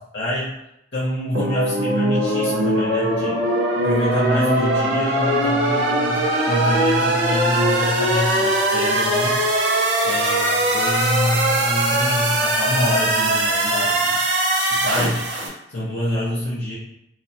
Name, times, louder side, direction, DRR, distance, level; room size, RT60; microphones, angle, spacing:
voice 1, 0.1-0.5 0.9-3.4 3.8-9.4 10.0-14.2 14.7-15.3 15.7-16.8, left 1 dB, 60° left, -10 dB, 0.6 m, -26 dB
sound 1, 1.3-15.5, right 1 dB, 70° right, 0.6 m, -20 dB
3.0 x 2.1 x 2.6 m, 0.81 s
head